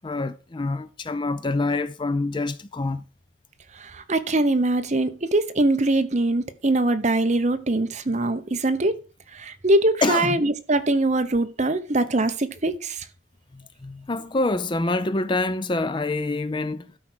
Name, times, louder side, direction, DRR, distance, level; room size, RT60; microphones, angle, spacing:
voice 1, 0.0-3.0 10.0-10.4 13.5-16.9, left 2 dB, 25° left, 0.4 m, -26 dB
voice 2, 3.9-9.0 9.3-13.0, right 2 dB, 35° right, 0.9 m, -22 dB
12.5 x 4.8 x 6.1 m
head